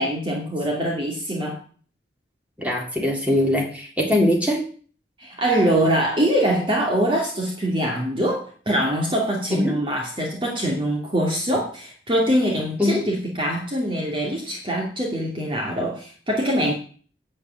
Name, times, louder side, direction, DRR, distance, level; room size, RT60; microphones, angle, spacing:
voice 1, 0.0-1.6 5.2-16.7, right 1 dB, 30° right, -1 dB, 2.4 m, -23 dB
voice 2, 2.6-4.6 9.5-9.7 12.8-13.0, left 1 dB, 10° right, -1 dB, 3.4 m, -21 dB
8.7 x 8.5 x 8.8 m, 0.43 s
head